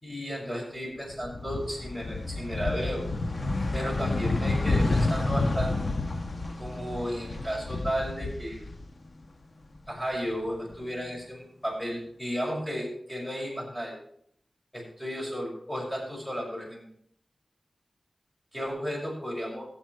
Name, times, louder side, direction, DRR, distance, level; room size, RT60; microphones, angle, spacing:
voice 1, 0.0-3.0 3.7-5.7 6.6-8.6 9.9-14.0 14.7-16.9 18.5-19.7, equal, 10° left, -2 dB, 6.1 m, -33 dB
sound 1, 1.1-9.2 9.6-10.8, left 2 dB, 55° left, 1.1 m, -30 dB
14.0 x 8.2 x 4.7 m, 0.67 s
wide cardioid pair, 70°, 0 cm